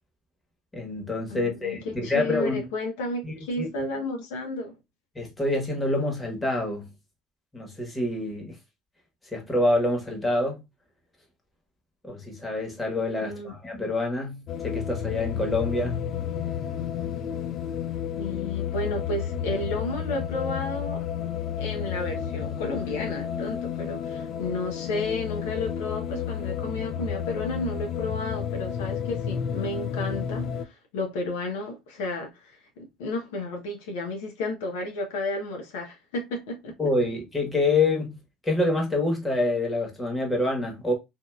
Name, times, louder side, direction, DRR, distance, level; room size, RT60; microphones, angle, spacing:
voice 1, 0.7-2.6 3.2-3.9 5.1-6.9 7.5-8.6 9.3-10.6 12.0-16.0 36.8-38.1 38.4-40.9, left 2 dB, 15° left, 1.3 m, -27 dB
voice 2, 1.3-4.8 13.2-13.5 18.2-21.0 21.6-36.8, left 2 dB, 85° left, 0.8 m, -32 dB
sound 1, 14.5-30.6, left 8 dB, 55° left, 0.4 m, -31 dB
2.8 x 2.6 x 2.3 m
supercardioid pair, 90°, 0 cm